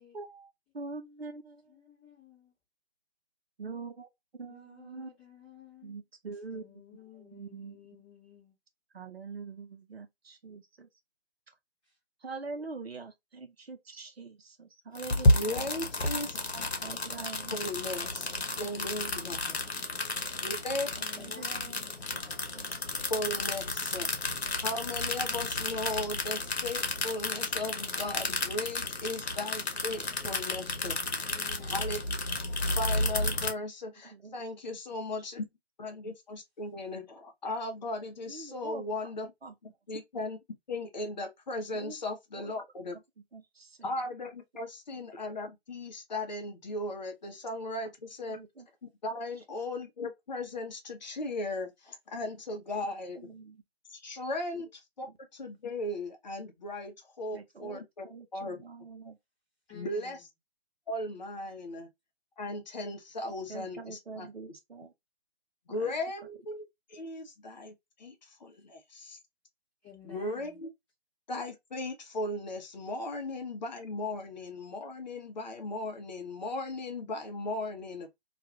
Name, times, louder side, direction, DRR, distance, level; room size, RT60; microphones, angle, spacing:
voice 1, 0.1-1.7 3.6-4.1 4.3-5.1 5.8-6.8 7.2-7.8 8.9-10.9 12.2-15.7 16.8-17.6 18.6-18.7 21.2-21.8 22.1-22.9 34.0-34.4 34.7-34.8 38.3-39.1 39.4-39.5 41.7-42.0 42.3-42.5 42.9-43.0 43.3-43.9 48.3-48.7 53.2-53.6 54.5-54.6 55.1-55.2 57.3-59.2 63.5-64.9 65.7-65.9, right 4 dB, 70° right, 0.8 m, -44 dB
voice 2, 1.7-2.5 4.5-5.9 6.5-8.5 21.0-22.1 31.3-32.0 59.7-60.2 69.8-70.6, left 8 dB, 5° left, 0.6 m, -52 dB
sound 1, 14.9-33.5, left 2 dB, 80° left, 0.9 m, -32 dB
voice 3, 15.3-16.7 17.5-18.3 18.6-19.6 20.4-21.0 23.1-24.3 24.6-31.1 31.7-32.0 32.8-35.4 35.8-39.3 39.9-40.4 40.7-43.0 43.8-48.4 48.8-53.4 53.9-55.1 55.3-58.1 58.3-58.6 59.7-60.3 60.9-61.9 62.4-64.3 65.7-69.2 70.0-70.7 71.3-78.1, left 2 dB, 45° left, 0.7 m, -37 dB
2.4 x 2.4 x 2.7 m
figure-of-eight pair, 145°, 32 cm